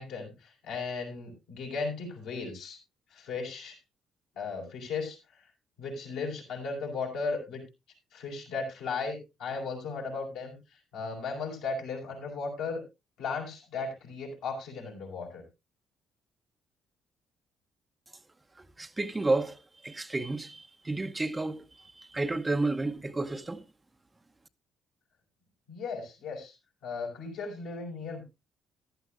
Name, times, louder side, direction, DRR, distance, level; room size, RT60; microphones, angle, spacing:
voice 1, 0.0-2.8 3.1-3.8 4.4-5.2 5.8-7.6 8.1-10.6 10.9-12.8 13.2-15.4 25.7-26.5 26.8-28.2, left 4 dB, 80° left, 5.3 m, -36 dB
voice 2, 18.6-23.6, right 2 dB, 25° right, 0.9 m, -31 dB
15.0 x 11.5 x 2.5 m
hypercardioid pair, 55°, 0 cm